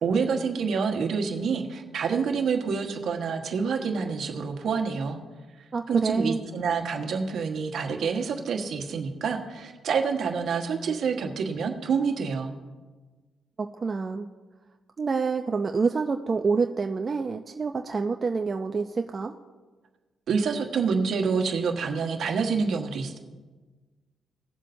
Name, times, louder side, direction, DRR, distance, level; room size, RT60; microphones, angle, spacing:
voice 1, 0.0-5.2 5.9-12.5 20.3-23.2, right 5 dB, 65° right, 3 dB, 1.4 m, -27 dB
voice 2, 5.7-6.4 13.6-14.3 15.0-19.3, right 4 dB, 40° right, 5 dB, 0.5 m, -27 dB
19.0 x 7.4 x 2.7 m, 1.3 s
cardioid pair, 85°, 0 cm